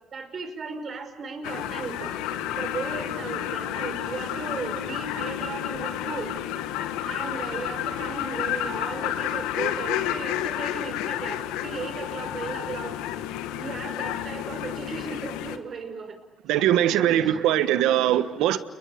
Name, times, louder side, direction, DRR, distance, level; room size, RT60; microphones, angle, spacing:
voice 1, 0.1-2.1 2.5-6.4 7.1-13.0 13.5-16.2 16.8-18.1, right 5 dB, 50° right, 5.4 m, -36 dB
sound 1, 1.4-15.6, left 11 dB, 90° left, 1.4 m, -31 dB
voice 2, 16.5-18.6, right 12 dB, 85° right, 1.3 m, -21 dB
29.5 x 23.0 x 8.5 m
supercardioid pair, 70°, 0 cm